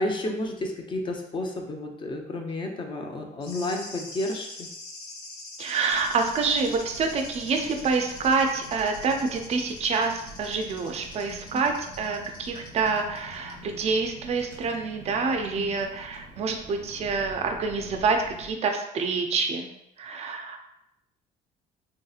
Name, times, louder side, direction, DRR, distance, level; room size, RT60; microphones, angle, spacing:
voice 1, 0.0-4.7 11.5-11.6 15.5-15.8, left 1 dB, 30° left, 2 dB, 0.5 m, -31 dB
sound 1, 3.4-13.2 13.5-13.6, left 2 dB, 60° left, 0.8 m, -43 dB
voice 2, 5.6-19.7 20.0-20.6, right 4 dB, 40° right, 4 dB, 0.4 m, -27 dB
Car, 5.9-18.5, right 1 dB, 90° right, 0.6 m, -47 dB
3.2 x 2.7 x 2.3 m, 0.82 s
cardioid pair, 110°, 17 cm